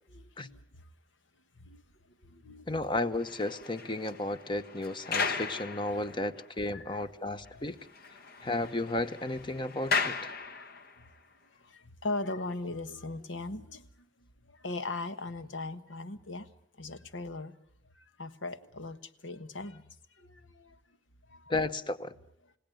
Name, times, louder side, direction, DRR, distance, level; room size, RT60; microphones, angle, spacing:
voice 1, 0.1-0.8 1.5-2.6 6.7-7.3 7.5-7.7 8.2-8.5 10.5-10.8 11.5-14.1 14.5-16.5 16.8-17.5 17.9-19.8 20.2-20.8 21.3-21.5, left 2 dB, 85° left, 11 dB, 1.4 m, -40 dB
voice 2, 2.7-7.8 8.4-10.3 21.5-22.1, left 2 dB, 25° left, 13 dB, 0.9 m, -33 dB
sound 1, 3.0-6.5 7.0-7.1 7.4-7.5 7.8-11.1, left 5 dB, 55° left, 1.5 m, -36 dB
29.5 x 17.0 x 9.3 m, 0.79 s
head